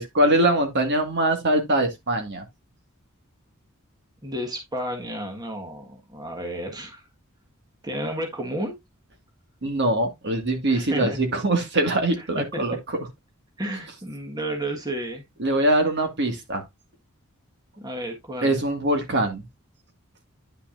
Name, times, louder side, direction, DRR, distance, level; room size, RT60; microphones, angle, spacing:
voice 1, 0.0-2.4 9.6-13.0 15.4-16.6 18.4-19.4, right 1 dB, 55° right, 1.9 m, -23 dB
voice 2, 4.2-7.0 7.8-8.8 10.7-11.2 12.2-12.3 12.5-12.6 13.6-15.2 17.8-18.6, right 1 dB, 20° right, 1.5 m, -32 dB
9.9 x 5.9 x 2.5 m
head